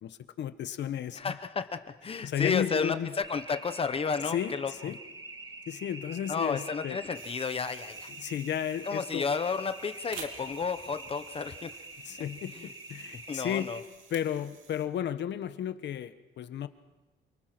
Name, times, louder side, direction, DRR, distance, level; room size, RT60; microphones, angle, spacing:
voice 1, 0.0-1.3 2.2-3.1 4.3-5.0 5.7-7.0 8.1-9.3 12.0-13.7 14.1-16.7, left 9 dB, 60° left, 11 dB, 1.2 m, -33 dB
voice 2, 1.1-4.7 6.3-8.1 8.8-11.8 12.5-12.7 13.1-13.8, left 5 dB, 25° left, 10 dB, 0.9 m, -32 dB
sound 1, 3.2-13.8, right 2 dB, 20° right, 1.6 m, -46 dB
sound 2, 7.1-14.9, right 6 dB, 70° right, 3.1 m, -51 dB
28.0 x 24.5 x 6.0 m, 1.2 s
cardioid pair, 180°, 21 cm